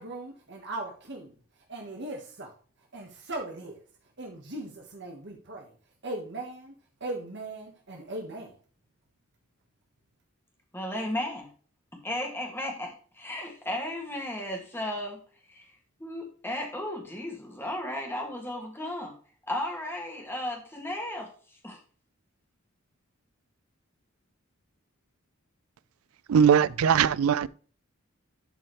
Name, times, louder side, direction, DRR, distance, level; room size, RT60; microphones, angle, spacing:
voice 1, 0.0-1.3 1.7-2.5 2.9-3.8 4.2-5.7 6.0-6.7 7.0-8.5, right 2 dB, 55° right, 1.4 m, -38 dB
voice 2, 10.7-11.5 12.0-15.2 15.5-15.7 16.0-19.1 19.5-21.3 21.6-21.8, left 1 dB, 10° left, 2.1 m, -34 dB
voice 3, 26.3-27.5, right 7 dB, 80° right, 0.4 m, -20 dB
11.5 x 4.6 x 3.1 m
head